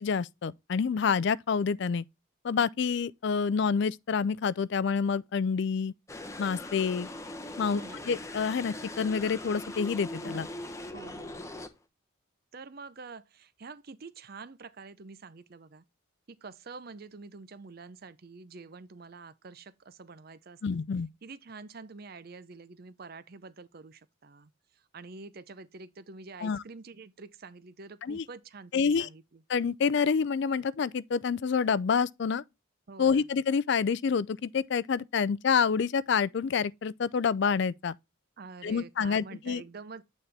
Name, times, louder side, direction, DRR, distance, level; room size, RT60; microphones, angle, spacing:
voice 1, 0.0-2.0 2.4-5.9 6.4-7.1 7.6-10.5 20.6-21.1 26.4-26.6 28.0-28.2 28.7-29.1 29.5-32.4 33.0-38.0 38.6-39.6, left 6 dB, 55° left, 0.4 m, -28 dB
sound 1, 6.1-11.7, left 1 dB, 15° left, 0.8 m, -41 dB
voice 2, 7.7-8.0 10.2-11.6 12.5-15.8 16.3-20.6 21.2-29.4 32.9-33.3 38.4-40.0, right 4 dB, 45° right, 0.6 m, -47 dB
8.9 x 4.2 x 3.3 m
head